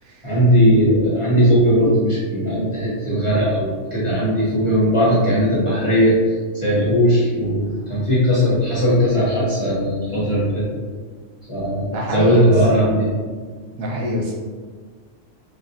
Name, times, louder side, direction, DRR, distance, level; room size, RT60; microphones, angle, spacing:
voice 1, 0.2-10.6 11.5-13.1, equal, 30° left, -8 dB, 0.7 m, -18 dB
voice 2, 11.8-12.5 13.7-14.3, equal, 85° right, -2 dB, 1.1 m, -26 dB
3.2 x 2.8 x 2.6 m, 1.5 s
omnidirectional pair, 1.4 m